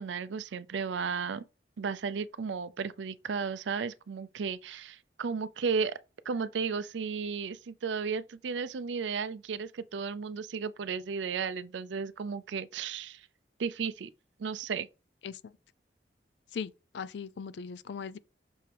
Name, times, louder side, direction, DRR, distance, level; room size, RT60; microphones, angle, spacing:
voice 1, 0.0-1.4 1.8-6.0 6.3-13.3 13.6-14.1 14.4-14.9, right 5 dB, 80° right, 0.4 m, -34 dB
voice 2, 16.5-18.2, left 6 dB, 65° left, 0.4 m, -39 dB
6.2 x 4.6 x 3.4 m
head